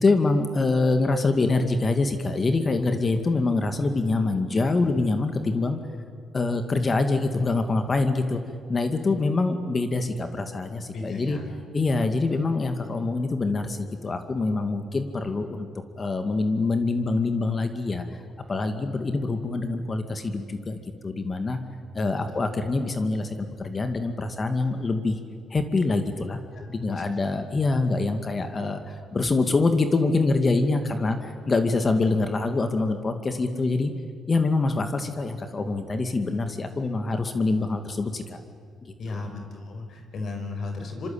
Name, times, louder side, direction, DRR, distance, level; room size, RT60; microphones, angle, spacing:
voice 1, 0.0-5.8 6.3-8.4 8.7-11.4 11.7-15.7 16.0-18.2 18.5-21.6 21.9-25.2 25.5-26.4 26.7-33.9 34.3-38.4 38.8-39.2, left 3 dB, 35° left, 8 dB, 2.2 m, -25 dB
voice 2, 10.9-11.4 22.1-22.4 26.5-27.2 31.7-31.8 39.0-41.1, left 3 dB, 60° left, 5 dB, 5.2 m, -35 dB
26.0 x 25.5 x 8.8 m, 2.1 s
cardioid pair, 90°, 0 cm